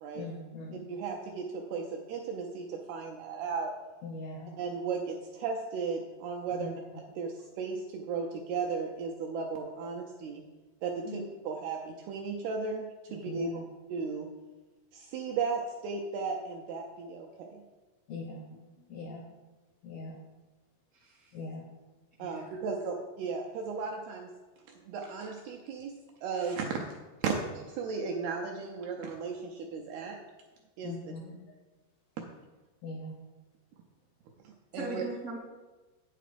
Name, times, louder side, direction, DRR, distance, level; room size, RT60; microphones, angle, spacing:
voice 1, 0.1-0.8 4.0-4.5 6.5-6.7 13.3-13.6 18.1-18.4 18.9-19.2 19.8-20.2 21.3-21.6 30.8-31.3 32.8-33.1, left 3 dB, 75° left, 1 dB, 2.2 m, -41 dB
voice 2, 0.9-3.7 4.6-10.4 10.8-13.6 13.9-14.3 14.9-17.6 22.2-24.3 24.9-25.9 26.2-26.8 27.2-30.2 30.8-31.1 34.7-35.0, right 5 dB, 80° right, 1 dB, 2.3 m, -35 dB
voice 3, 18.1-18.6 20.9-21.4 22.2-22.4 34.7-35.4, right 1 dB, 55° left, -5 dB, 1.0 m, -41 dB
8.9 x 7.7 x 5.0 m, 1.2 s
omnidirectional pair, 5.3 m